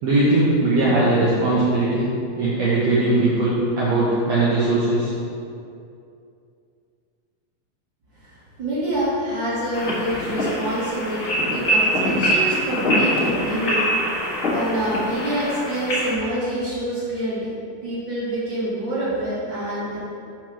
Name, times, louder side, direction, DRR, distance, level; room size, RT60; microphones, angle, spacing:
voice 1, 0.0-2.1 2.4-5.1, right 2 dB, 75° right, -7 dB, 1.5 m, -19 dB
voice 2, 8.2-13.9 14.1-17.5 17.8-20.0, right 1 dB, 40° right, -9 dB, 1.8 m, -26 dB
sound 1, 9.7-16.1, equal, 70° left, 0.7 m, -23 dB
5.4 x 4.6 x 6.2 m, 2.5 s
omnidirectional pair, 4.3 m